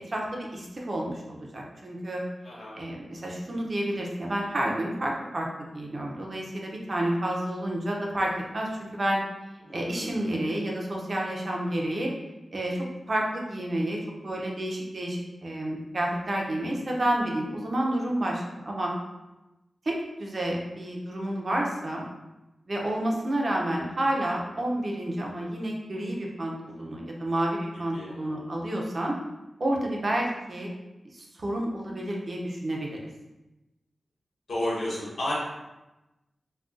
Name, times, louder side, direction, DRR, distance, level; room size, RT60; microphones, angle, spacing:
voice 1, 0.1-2.2 2.7-9.2 9.7-12.1 12.5-18.9 19.9-22.1 22.7-29.2 29.6-30.7 31.1-33.0, right 1 dB, 40° right, -1 dB, 0.5 m, -30 dB
voice 2, 2.4-2.8 9.6-10.3 27.9-28.6 34.5-35.3, left 1 dB, 85° left, -7 dB, 1.2 m, -33 dB
2.5 x 2.2 x 3.6 m, 1.0 s
wide cardioid pair, 120°, 0 cm